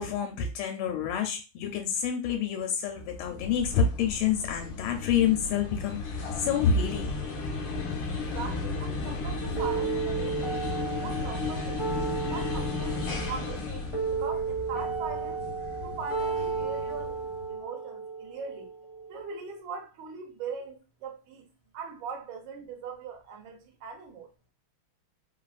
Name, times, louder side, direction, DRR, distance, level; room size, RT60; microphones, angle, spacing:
voice 1, 0.0-7.1, left 7 dB, 80° left, 1.4 m, -28 dB
sound 1, 3.0-17.5, left 3 dB, 65° left, 0.9 m, -35 dB
voice 2, 8.3-11.8 12.3-13.0 13.3-15.4 15.8-18.7 19.1-21.5 21.7-24.3, right 5 dB, 75° right, 1.5 m, -40 dB
sound 2, 9.6-19.6, right 5 dB, 15° right, 0.6 m, -34 dB
3.6 x 2.4 x 2.4 m
omnidirectional pair, 2.3 m